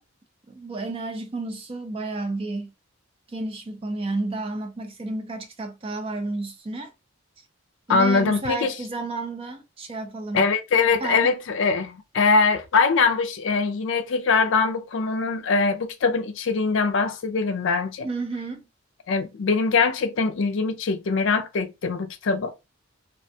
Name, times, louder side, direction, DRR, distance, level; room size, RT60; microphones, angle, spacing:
voice 1, 0.5-2.7 3.3-6.9 7.9-10.5 11.0-11.4 18.0-18.7, right 2 dB, 25° right, 0.4 m, -31 dB
voice 2, 7.9-8.7 10.3-18.1 19.1-22.5, left 4 dB, 65° left, 0.4 m, -22 dB
2.4 x 2.2 x 2.6 m
head